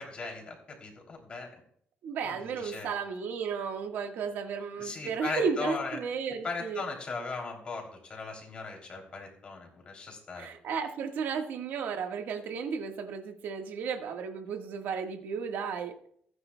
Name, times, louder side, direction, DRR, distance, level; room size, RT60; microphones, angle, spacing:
voice 1, 0.0-1.5 2.3-2.9 4.8-6.0 6.4-7.8 8.1-10.5, left 4 dB, 30° left, 1 dB, 3.1 m, -38 dB
voice 2, 2.0-6.8 10.4-16.1, right 6 dB, 65° right, 5 dB, 1.5 m, -34 dB
27.5 x 9.7 x 2.3 m, 0.65 s
cardioid pair, 165°, 4 cm